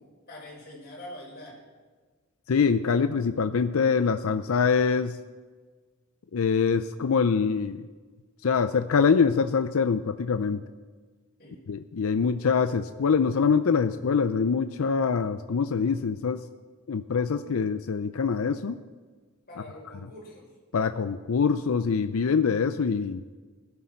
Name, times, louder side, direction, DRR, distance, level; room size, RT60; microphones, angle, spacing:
voice 1, 0.0-1.6 11.4-11.6 19.5-20.5, left 1 dB, 45° left, -3 dB, 5.7 m, -44 dB
voice 2, 2.5-5.2 6.3-7.9 8.4-10.6 11.7-16.4 16.9-18.8 20.7-23.2, left 5 dB, 75° left, 10 dB, 0.5 m, -24 dB
20.0 x 12.0 x 4.4 m, 1.4 s
head